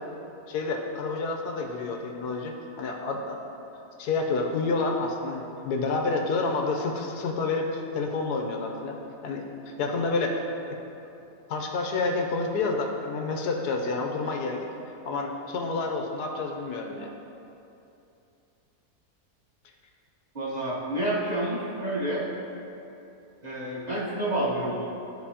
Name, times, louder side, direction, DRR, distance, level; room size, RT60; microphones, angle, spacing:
voice 1, 0.5-3.4 4.0-9.0 9.2-9.5 9.8-10.4 10.7-10.8 11.5-14.7 15.0-17.1, left 3 dB, 90° left, 2 dB, 1.3 m, -29 dB
voice 2, 20.3-22.3 23.4-24.9, right 1 dB, 35° right, -6 dB, 0.8 m, -29 dB
11.5 x 4.2 x 2.8 m, 2.8 s
omnidirectional pair, 1.6 m